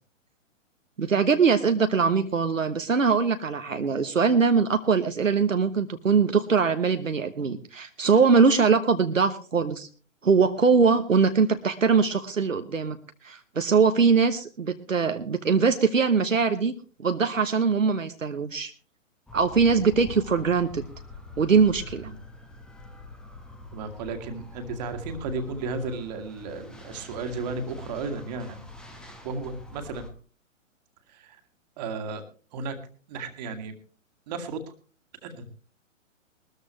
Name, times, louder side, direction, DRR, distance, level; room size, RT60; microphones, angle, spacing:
voice 1, 1.0-9.9 10.2-13.0 13.2-16.7 17.0-18.7 19.3-20.8 21.4-22.1, right 5 dB, 75° right, 8 dB, 1.1 m, -22 dB
sound 1, 19.3-30.1, left 2 dB, ahead, 1.0 m, -44 dB
voice 2, 23.7-28.6 29.2-30.1 31.1-31.4 31.8-32.2 32.5-32.8 33.1-33.7 34.3-34.6 35.2-35.5, right 3 dB, 30° right, 7 dB, 1.9 m, -34 dB
20.5 x 13.5 x 3.1 m, 0.38 s
figure-of-eight pair, 120°, 39 cm